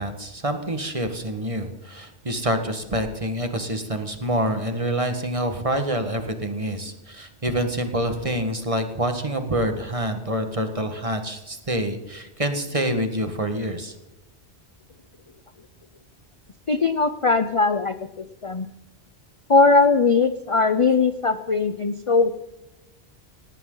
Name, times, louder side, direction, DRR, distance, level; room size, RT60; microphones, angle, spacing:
voice 1, 0.0-13.9, right 1 dB, 30° right, 7 dB, 1.7 m, -27 dB
voice 2, 16.7-18.0 18.4-18.7 19.5-22.3, left 4 dB, 35° left, 10 dB, 0.6 m, -19 dB
18.0 x 16.5 x 3.9 m, 0.95 s
omnidirectional pair, 1.1 m